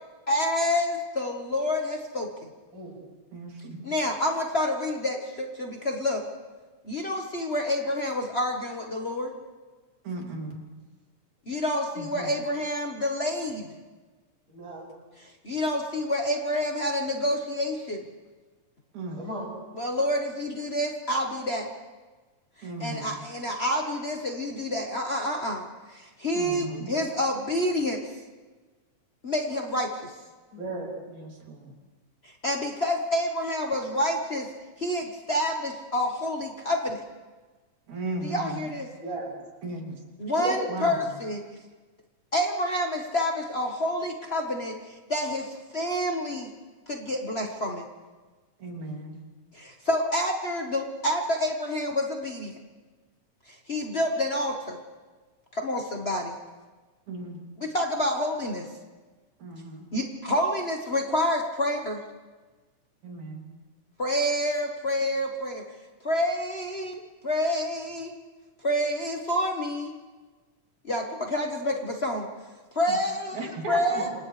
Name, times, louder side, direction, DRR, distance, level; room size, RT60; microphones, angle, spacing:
voice 1, 0.3-2.3 3.8-6.2 6.8-9.3 11.5-13.7 15.2-18.1 19.7-21.7 22.6-28.0 29.2-30.1 32.4-34.5 34.8-37.0 38.2-38.9 40.2-41.4 42.3-46.5 46.9-47.8 49.5-52.5 53.7-54.8 55.5-56.3 57.6-58.7 59.9-62.0 64.0-65.6 66.0-68.1 68.6-69.9 70.8-72.3 72.7-74.1, left 1 dB, 60° left, 1 dB, 0.6 m, -28 dB
voice 2, 3.3-3.9 10.0-10.6 12.0-12.3 18.9-19.2 22.6-23.1 26.3-26.9 31.1-31.7 37.9-38.7 39.6-40.0 40.7-41.1 48.6-49.2 57.1-57.4 59.4-59.9 63.0-63.5 72.9-73.0 73.3-74.1, right 2 dB, 70° right, 0 dB, 4.2 m, -36 dB
voice 3, 14.5-14.9 19.2-19.5 30.5-30.9 39.0-39.3 40.4-40.7 73.9-74.1, right 1 dB, 35° right, -9 dB, 7.6 m, -35 dB
30.0 x 26.5 x 3.3 m, 1.3 s
omnidirectional pair, 3.5 m